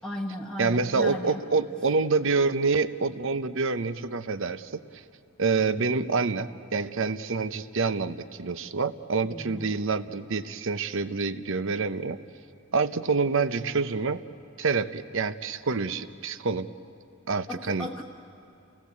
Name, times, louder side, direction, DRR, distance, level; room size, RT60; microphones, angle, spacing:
voice 1, 0.0-1.4 9.2-9.7 17.5-18.0, left 1 dB, 5° left, -4 dB, 1.2 m, -36 dB
voice 2, 0.6-5.0 5.4-12.2 12.7-14.2 14.6-16.7 17.3-18.0, right 4 dB, 60° right, 12 dB, 0.7 m, -27 dB
30.0 x 17.5 x 8.2 m, 2.6 s
head